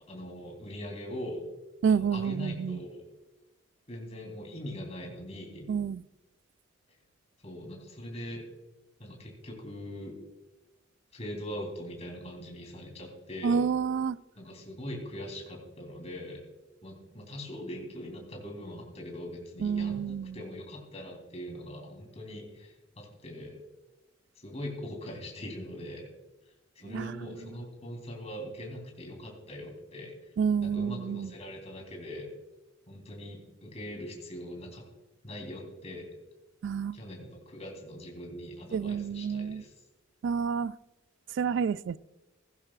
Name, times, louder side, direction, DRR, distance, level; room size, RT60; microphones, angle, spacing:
voice 1, 0.1-1.4 1.9-3.0 3.9-5.7 7.4-8.4 9.0-10.1 11.1-13.6 14.4-16.4 16.8-23.5 24.4-26.1 26.7-30.3 30.6-32.3 32.9-34.8 35.2-36.0 36.9-39.7, left 1 dB, 35° left, 3.5 m, -41 dB
voice 2, 1.8-2.8 5.7-6.0 13.4-14.2 19.6-20.4 26.8-27.2 30.4-31.3 36.6-37.0 38.7-39.6 40.2-40.7 41.3-42.0, right 6 dB, 65° right, 0.3 m, -29 dB
16.0 x 15.5 x 2.4 m
head